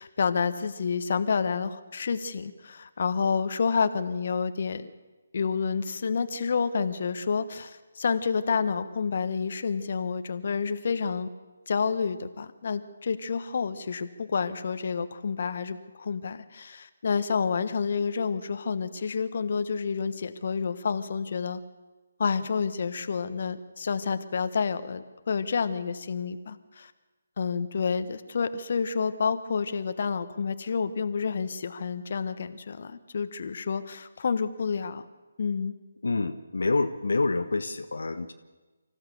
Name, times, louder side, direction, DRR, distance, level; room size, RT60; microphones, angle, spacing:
voice 1, 0.0-4.9 5.3-11.3 11.7-21.6 22.2-26.9 27.4-35.0 35.4-35.7, left 5 dB, 50° left, 11 dB, 1.2 m, -29 dB
voice 2, 36.0-38.3, left 3 dB, 70° left, 8 dB, 1.1 m, -27 dB
25.5 x 15.0 x 6.9 m, 1.2 s
figure-of-eight pair, 145°, 0 cm